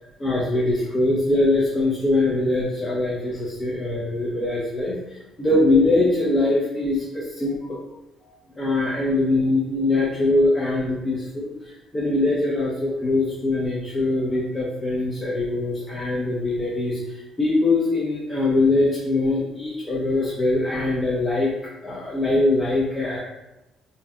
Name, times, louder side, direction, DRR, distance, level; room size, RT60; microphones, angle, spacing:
voice 1, 0.2-7.8 8.2-23.2, left 2 dB, 25° left, -6 dB, 0.5 m, -22 dB
2.6 x 2.2 x 2.2 m, 0.94 s
supercardioid pair, 75°, 0 cm